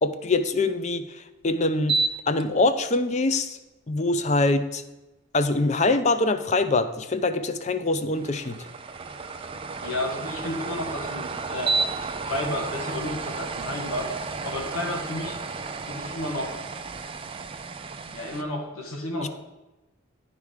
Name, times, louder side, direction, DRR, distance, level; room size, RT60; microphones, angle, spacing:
voice 1, 0.0-3.6 3.9-4.8 5.3-8.6 19.2-19.3, left 2 dB, 35° left, 11 dB, 0.5 m, -24 dB
sound 1, 1.8-2.4 2.9-3.0 8.2-18.4, right 4 dB, 25° right, 0.4 m, -32 dB
voice 2, 9.8-11.7 12.3-14.1 14.4-15.4 15.9-16.7 18.1-19.3, left 1 dB, 90° left, 2 dB, 1.6 m, -32 dB
10.5 x 4.9 x 4.9 m, 1.0 s
head